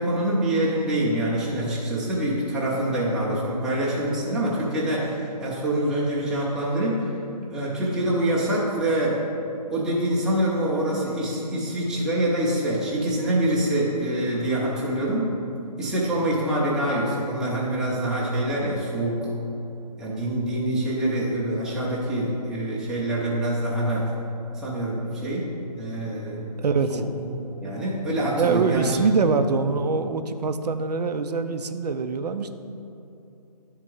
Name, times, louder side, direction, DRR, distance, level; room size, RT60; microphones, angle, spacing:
voice 1, 0.0-7.1 7.5-9.2 9.7-15.3 15.8-19.3 20.0-24.1 24.5-25.5 25.8-26.6 26.9-27.1 27.6-29.0 29.4-29.5, right 1 dB, 5° right, -7 dB, 0.6 m, -25 dB
voice 2, 26.6-27.0 28.3-32.5, right 4 dB, 75° right, 8 dB, 0.5 m, -24 dB
10.5 x 3.7 x 4.5 m, 2.7 s
hypercardioid pair, 155°, 21 cm